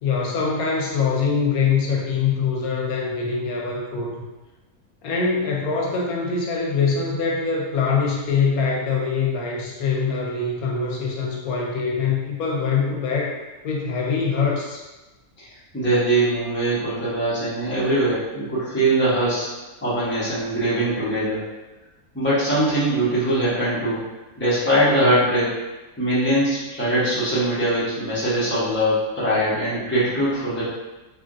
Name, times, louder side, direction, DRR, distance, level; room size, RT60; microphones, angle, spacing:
voice 1, 0.0-4.2 5.0-13.4 13.6-14.8, left 5 dB, 85° left, -2 dB, 1.1 m, -23 dB
voice 2, 15.7-19.5 19.8-21.4 22.1-24.0 24.4-25.6 26.0-30.6, right 1 dB, 10° left, -10 dB, 0.8 m, -22 dB
3.2 x 2.5 x 2.5 m, 1.1 s
omnidirectional pair, 1.5 m